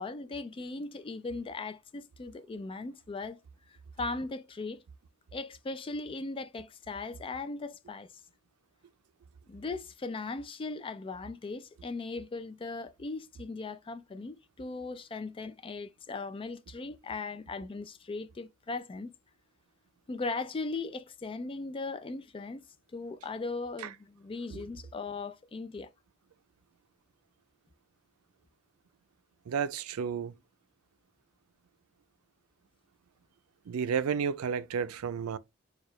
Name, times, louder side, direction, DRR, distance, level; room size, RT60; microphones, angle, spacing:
voice 1, 0.0-3.4 4.0-4.8 5.3-8.1 9.5-19.1 20.1-22.6 22.9-25.9, left 3 dB, 25° left, 0.3 m, -38 dB
voice 2, 29.5-30.3 33.7-35.4, right 7 dB, 90° right, 0.4 m, -31 dB
4.6 x 2.3 x 3.1 m
head